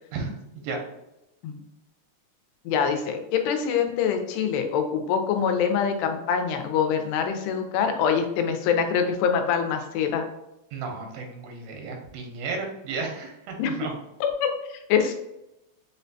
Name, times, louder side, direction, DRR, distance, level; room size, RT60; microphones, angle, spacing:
voice 1, 0.1-0.8 10.7-13.9, right 4 dB, 85° right, 2 dB, 2.9 m, -33 dB
voice 2, 2.7-10.3 13.6-13.7 14.2-15.1, left 7 dB, 85° left, 6 dB, 2.6 m, -25 dB
6.4 x 2.2 x 2.6 m, 0.90 s
omnidirectional pair, 4.7 m